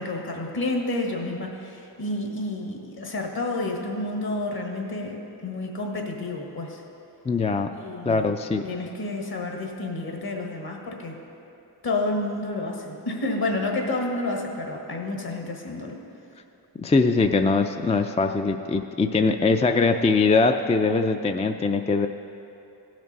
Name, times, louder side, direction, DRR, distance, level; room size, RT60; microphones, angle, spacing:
voice 1, 0.0-6.8 7.7-8.3 8.6-11.2 11.8-16.0, left 2 dB, 55° left, 1 dB, 1.7 m, -30 dB
voice 2, 7.3-7.7 8.1-8.6 16.8-22.1, left 4 dB, 15° left, 6 dB, 0.3 m, -22 dB
16.0 x 6.1 x 4.1 m, 2.8 s
cardioid pair, 60°, 44 cm